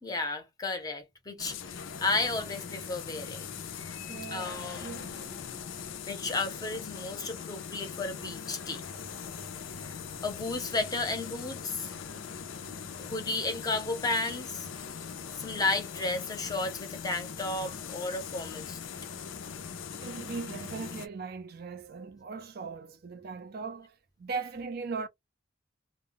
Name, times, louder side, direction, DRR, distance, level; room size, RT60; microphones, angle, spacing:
voice 1, 0.0-3.5 4.3-4.9 6.1-8.8 9.8-11.9 13.0-14.7 15.4-18.8, left 3 dB, 20° left, 0.6 m, -33 dB
sound 1, 1.4-21.1, left 6 dB, 85° left, 0.4 m, -41 dB
voice 2, 4.1-5.4 20.0-23.9 24.2-25.1, right 4 dB, 50° right, 0.4 m, -39 dB
2.1 x 2.0 x 3.7 m
head